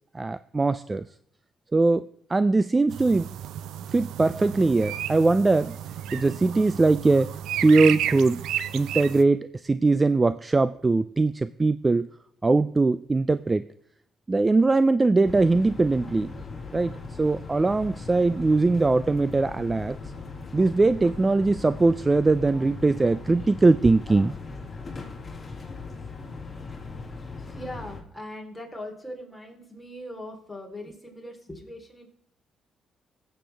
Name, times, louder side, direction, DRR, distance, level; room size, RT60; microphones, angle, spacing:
voice 1, 0.1-1.1 1.7-3.3 3.9-5.8 6.1-8.4 8.7-12.1 12.4-13.7 14.3-16.3 16.7-20.0 20.5-24.3, right 3 dB, 25° right, 15 dB, 0.3 m, -21 dB
sound 1, 2.9-9.2, right 11 dB, 85° right, 0.5 m, -32 dB
sound 2, 15.2-28.0, left 4 dB, 25° left, 2.7 m, -39 dB
voice 2, 27.5-32.1, left 1 dB, 5° left, 0 dB, 3.5 m, -40 dB
18.5 x 7.8 x 3.4 m, 0.72 s
cardioid pair, 90°, 0 cm